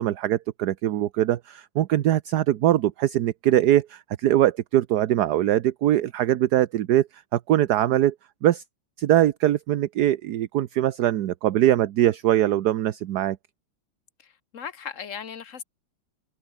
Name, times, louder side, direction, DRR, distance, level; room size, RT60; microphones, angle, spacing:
voice 1, 0.0-8.1 8.4-8.6 9.0-13.4, right 12 dB, 60° right, 1.2 m, -22 dB
voice 2, 14.2-15.6, left 7 dB, 45° left, 1.4 m, -37 dB
omnidirectional pair, 2.2 m